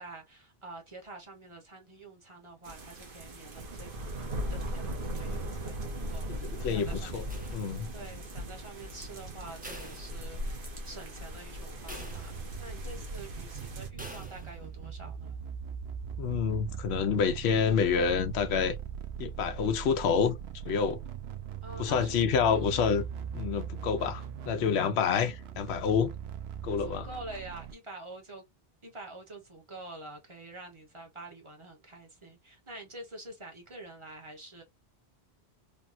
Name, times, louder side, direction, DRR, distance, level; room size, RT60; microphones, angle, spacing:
voice 1, 0.0-3.9 4.2-7.3 7.9-15.4 21.6-22.8 26.8-28.4 28.8-34.6, right 2 dB, 30° right, 1.0 m, -47 dB
sound 1, 2.6-13.9, equal, 60° right, 1.1 m, -38 dB
voice 2, 6.6-7.2 7.5-7.9 16.2-18.7 19.2-20.4 20.7-21.0 21.8-23.0 23.3-26.1 26.6-27.1, left 6 dB, 85° left, 0.8 m, -28 dB
sound 2, 7.3-8.1 9.6-10.8 11.2-11.3 11.9-12.8 14.0-14.8, right 1 dB, 10° right, 0.6 m, -47 dB
sound 3, 12.0-27.7, right 7 dB, 80° right, 0.8 m, -40 dB
3.5 x 2.2 x 2.5 m
omnidirectional pair, 1.1 m